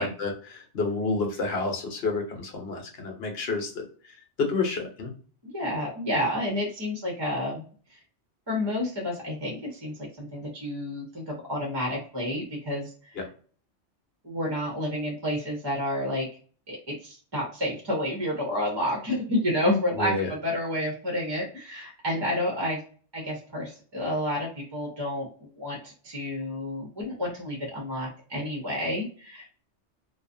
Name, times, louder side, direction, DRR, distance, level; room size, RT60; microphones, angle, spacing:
voice 1, 0.0-3.8 4.4-5.1 13.2-13.3 20.0-20.3, left 3 dB, 60° left, 2 dB, 1.0 m, -29 dB
voice 2, 5.5-7.6 7.9-8.0 8.5-12.9 14.2-16.3 16.7-22.8 23.1-29.5, left 1 dB, 25° right, -1 dB, 0.6 m, -30 dB
2.5 x 2.3 x 2.5 m, 0.41 s
omnidirectional pair, 1.2 m